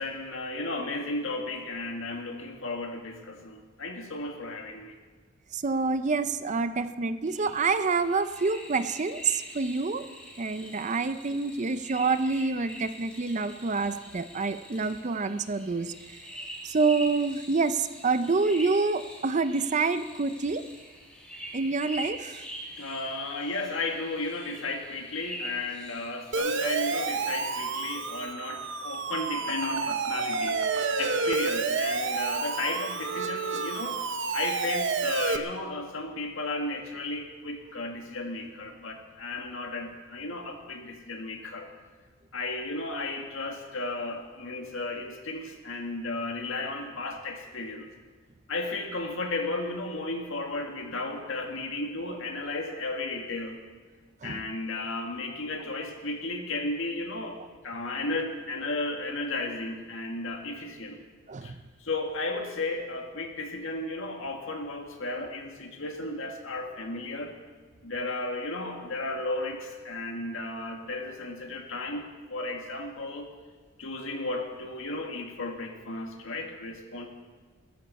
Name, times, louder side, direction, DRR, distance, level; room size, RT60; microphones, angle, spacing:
voice 1, 0.0-4.9 22.8-30.6 31.0-34.0 34.3-41.7 42.3-47.9 48.5-53.6 54.2-57.4 57.6-61.0 61.4-61.5 61.8-67.3 67.8-73.3 73.8-77.1, left 2 dB, 65° left, 3 dB, 2.0 m, -34 dB
voice 2, 5.5-10.1 10.4-15.9 16.6-20.6 21.5-22.4 54.2-54.4 61.3-61.6, right 4 dB, 35° right, 11 dB, 0.5 m, -27 dB
sound 1, 7.2-27.0, equal, 5° left, 3.6 m, -44 dB
Siren, 26.3-35.4, right 4 dB, 60° right, 0.9 m, -29 dB
21.0 x 14.0 x 4.2 m, 1.4 s
head